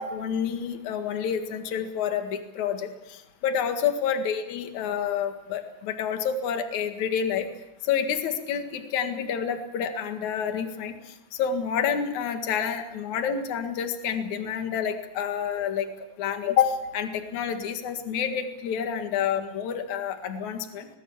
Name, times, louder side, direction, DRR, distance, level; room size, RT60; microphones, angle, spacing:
voice 1, 0.0-7.5 7.8-10.9 11.4-15.9 16.2-20.9, left 7 dB, 50° left, 6 dB, 2.7 m, -28 dB
23.0 x 20.0 x 7.2 m, 0.95 s
omnidirectional pair, 5.1 m